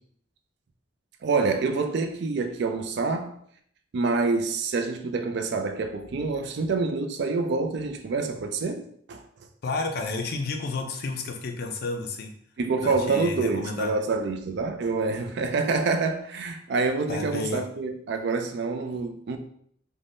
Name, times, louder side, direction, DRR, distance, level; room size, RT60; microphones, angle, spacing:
voice 1, 1.2-3.4 3.9-9.2 12.6-19.4, right 4 dB, 60° right, 0.3 m, -27 dB
voice 2, 9.6-12.3 12.8-13.9 17.1-17.6, left 3 dB, 55° left, 0.4 m, -31 dB
3.3 x 2.1 x 2.6 m
head